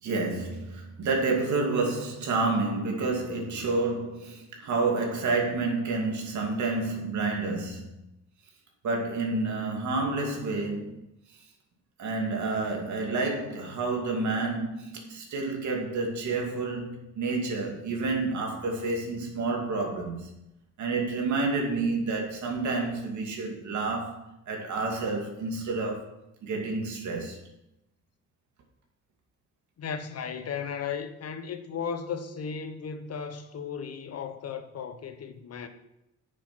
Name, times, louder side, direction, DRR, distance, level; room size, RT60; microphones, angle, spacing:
voice 1, 0.0-8.0 8.8-11.1 12.0-20.3 20.8-26.1 26.4-27.4, right 3 dB, 70° right, 2.5 m, -29 dB
voice 2, 29.8-35.7, left 6 dB, 55° left, 1.1 m, -35 dB
8.8 x 6.8 x 6.2 m
cardioid pair, 90°, 30 cm